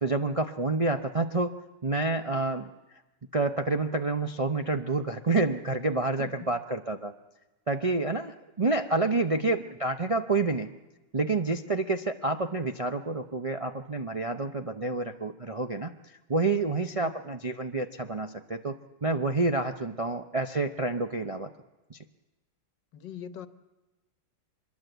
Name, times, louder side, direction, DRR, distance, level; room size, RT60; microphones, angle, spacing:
voice 1, 0.0-1.5 1.8-3.0 3.3-7.1 7.7-10.7 11.1-21.5 21.9-22.0, right 3 dB, 45° right, 5 dB, 0.4 m, -28 dB
voice 2, 6.1-6.6 9.4-9.6 16.9-17.3 22.9-23.5, left 8 dB, 90° left, 12 dB, 1.8 m, -43 dB
24.5 x 21.5 x 8.0 m, 1.1 s
omnidirectional pair, 1.9 m